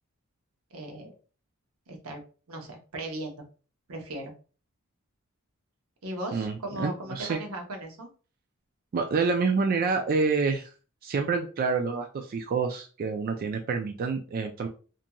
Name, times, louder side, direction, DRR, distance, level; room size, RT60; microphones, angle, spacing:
voice 1, 0.7-1.1 1.9-2.2 2.5-3.4 3.9-4.3 6.0-8.1, right 1 dB, 85° right, 3 dB, 0.7 m, -37 dB
voice 2, 6.3-7.4 8.9-10.7 11.0-14.7, right 4 dB, 45° right, 4 dB, 0.3 m, -27 dB
2.8 x 2.5 x 2.2 m, 0.37 s
head